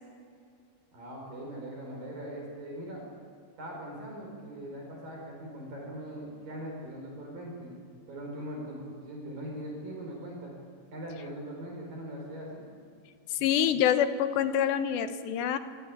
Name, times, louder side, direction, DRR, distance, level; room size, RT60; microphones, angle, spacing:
voice 1, 0.9-3.0 3.6-7.7 8.1-10.5 10.9-12.6, right 1 dB, 55° right, -1 dB, 6.8 m, -41 dB
voice 2, 13.3-15.6, left 9 dB, 90° left, 9 dB, 3.4 m, -26 dB
25.0 x 22.0 x 8.9 m, 2.3 s
omnidirectional pair, 4.8 m